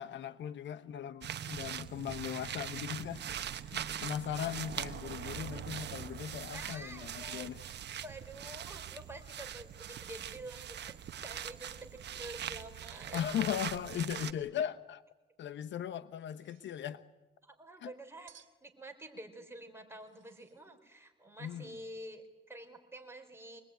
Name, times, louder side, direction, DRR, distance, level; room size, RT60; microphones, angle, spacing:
voice 1, 0.0-3.2 3.6-7.6 13.1-15.0 15.4-17.0 17.8-17.9 21.4-21.7, left 9 dB, 70° left, 1.0 m, -38 dB
sound 1, 1.2-14.3, right 9 dB, 60° right, 1.1 m, -42 dB
voice 2, 6.5-7.5 8.0-13.2 17.4-18.3 18.6-23.6, right 1 dB, 10° right, 4.4 m, -48 dB
sound 2, 16.1-16.9 18.3-18.7 20.0-20.7, right 10 dB, 80° right, 1.8 m, -62 dB
24.5 x 20.5 x 9.3 m
cardioid pair, 90°, 20 cm